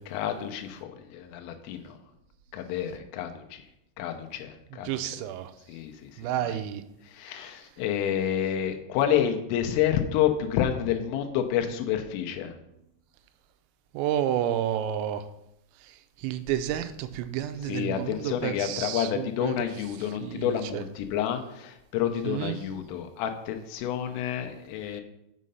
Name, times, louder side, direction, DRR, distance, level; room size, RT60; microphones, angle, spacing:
voice 1, 0.1-2.0 2.5-3.6 4.0-4.9 5.7-6.1 6.4-6.6 7.1-12.5 17.6-25.0, left 9 dB, 80° left, 6 dB, 3.3 m, -29 dB
voice 2, 4.9-5.5 6.2-6.8 13.9-15.2 16.2-19.7 20.2-20.8 22.2-22.5, right 11 dB, 90° right, 9 dB, 3.3 m, -30 dB
6.5 x 6.3 x 5.5 m, 0.82 s
omnidirectional pair, 5.8 m